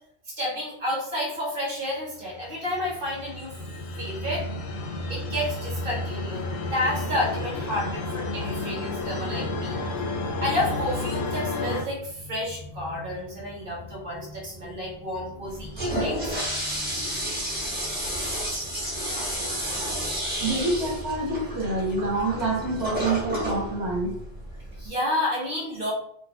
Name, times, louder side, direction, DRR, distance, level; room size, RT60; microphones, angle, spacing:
voice 1, 0.3-3.5 4.0-4.5 5.1-9.8 10.4-16.3 24.8-25.9, left 1 dB, 55° right, -3 dB, 1.3 m, -30 dB
sound 1, 2.2-11.8, left 2 dB, 80° left, 0.9 m, -32 dB
sound 2, 4.9-24.5, left 2 dB, 55° left, 0.6 m, -44 dB
Toilet flush, 15.5-24.9, equal, 10° right, 1.3 m, -31 dB
voice 2, 20.4-24.2, right 2 dB, 75° right, -2 dB, 1.3 m, -27 dB
3.6 x 2.3 x 2.9 m, 0.67 s
omnidirectional pair, 1.1 m